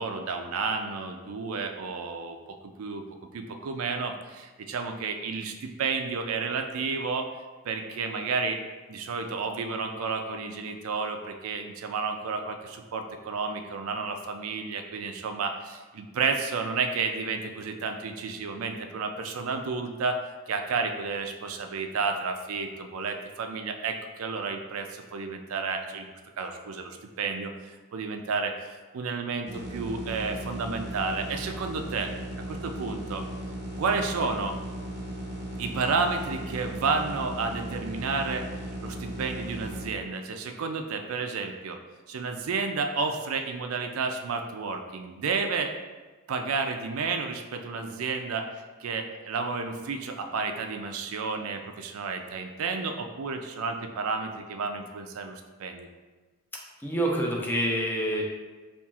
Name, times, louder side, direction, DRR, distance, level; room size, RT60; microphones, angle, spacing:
voice 1, 0.0-3.0 3.3-7.3 7.7-8.6 8.9-20.2 20.5-27.5 27.9-28.5 28.9-32.1 32.5-33.3 33.8-34.5 35.6-38.5 38.8-41.8 42.1-45.7 46.3-48.5 48.8-55.9, right 4 dB, 70° right, 6 dB, 0.4 m, -31 dB
sound 1, 29.5-39.9, right 1 dB, 35° right, 0.6 m, -37 dB
voice 2, 56.8-58.2, right 1 dB, 10° left, -2 dB, 0.5 m, -27 dB
5.5 x 2.5 x 2.4 m, 1.3 s
head